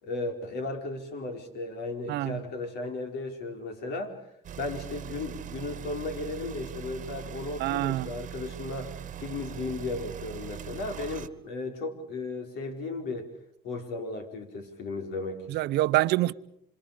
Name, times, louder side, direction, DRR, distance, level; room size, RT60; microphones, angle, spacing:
voice 1, 0.0-4.2 4.6-13.3 13.6-15.4, left 3 dB, 80° left, 4.8 m, -35 dB
voice 2, 2.1-2.4 7.6-8.1 15.5-16.3, right 17 dB, 80° right, 0.8 m, -26 dB
sound 1, 4.4-11.3, right 10 dB, 50° right, 1.3 m, -41 dB
27.0 x 26.5 x 5.1 m
cardioid pair, 110°, 17 cm